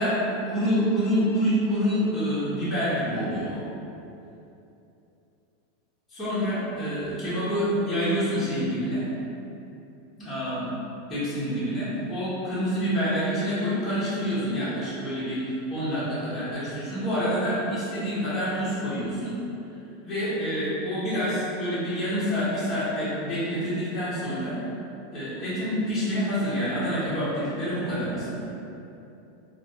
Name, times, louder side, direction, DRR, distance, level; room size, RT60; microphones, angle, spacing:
voice 1, 0.0-3.6 6.1-9.1 10.2-10.7 11.1-19.4 20.0-24.6 25.1-28.6, equal, 10° left, -13 dB, 0.9 m, -27 dB
3.1 x 2.3 x 2.6 m, 2.8 s
supercardioid pair, 180°, 0 cm